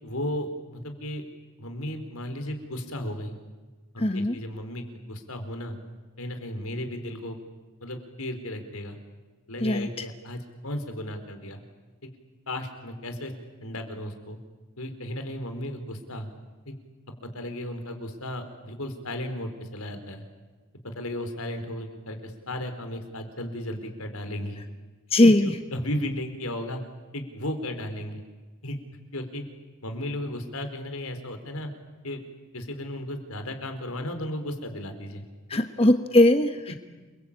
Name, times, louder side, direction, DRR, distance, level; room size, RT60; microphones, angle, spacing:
voice 1, 0.0-1.2 1.6-3.4 3.9-5.8 6.2-7.4 7.8-9.0 9.5-11.6 12.0-12.1 12.5-13.3 13.6-14.4 14.8-16.3 16.7-16.8 17.2-20.2 20.8-24.6 25.2-26.8 27.1-28.2 28.6-28.8 29.1-29.4 29.8-31.7 32.0-32.2 32.5-35.2, left 1 dB, 80° left, 6 dB, 4.4 m, -34 dB
voice 2, 4.0-4.4 9.6-10.1 25.1-25.5 35.5-36.8, left 1 dB, 25° left, 7 dB, 1.1 m, -20 dB
29.5 x 23.0 x 8.7 m, 1.3 s
head